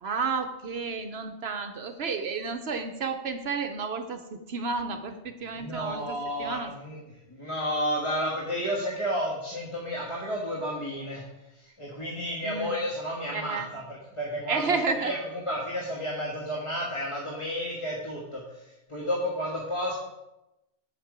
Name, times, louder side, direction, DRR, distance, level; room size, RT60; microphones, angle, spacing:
voice 1, 0.0-6.7 12.4-12.8 13.3-13.7 14.5-15.1, right 4 dB, 60° right, 7 dB, 0.9 m, -31 dB
voice 2, 5.6-7.0 7.3-11.2 11.5-15.2 15.4-18.6 18.9-19.9, equal, 25° left, -4 dB, 1.5 m, -31 dB
8.5 x 7.3 x 4.9 m, 0.95 s
omnidirectional pair, 1.3 m